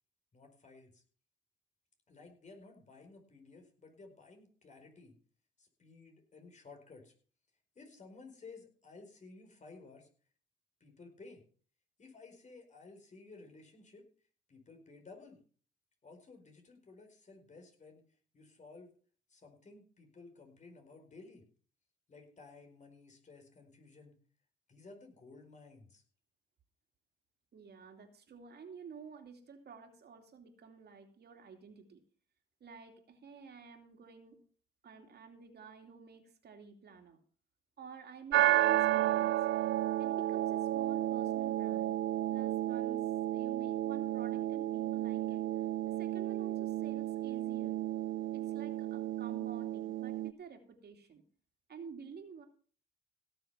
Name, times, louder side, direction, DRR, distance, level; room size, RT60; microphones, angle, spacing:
voice 1, 0.3-1.0 2.1-5.1 5.6-7.1 7.7-10.1 10.8-11.4 12.0-14.1 14.5-15.4 16.0-18.0 18.3-18.9 19.3-21.4 22.1-24.2 24.7-26.0, left 3 dB, 35° left, 3 dB, 4.6 m, -55 dB
voice 2, 27.5-32.0 32.6-34.4 34.8-37.2 37.8-39.3 40.0-42.0 42.3-43.0 43.3-47.7 48.3-51.2 51.7-52.4, right 5 dB, 55° right, 5 dB, 2.8 m, -51 dB
sound 1, 38.3-50.3, right 14 dB, 75° right, 0.5 m, -32 dB
17.0 x 6.9 x 5.8 m, 0.43 s
cardioid pair, 90°, 20 cm